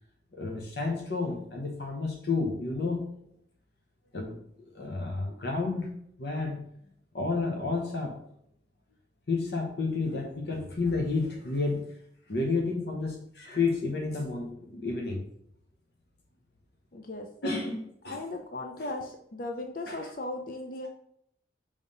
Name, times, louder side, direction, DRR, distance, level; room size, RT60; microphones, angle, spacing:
voice 1, 0.3-3.1 4.1-4.4 4.7-6.6 7.1-8.2 9.3-11.9 12.3-15.2 17.4-18.2 18.8-18.9 19.9-20.1, left 3 dB, 70° left, 1 dB, 1.0 m, -31 dB
voice 2, 16.9-17.3 18.1-20.9, left 2 dB, 50° left, 4 dB, 0.5 m, -37 dB
5.4 x 3.5 x 5.4 m, 0.70 s
head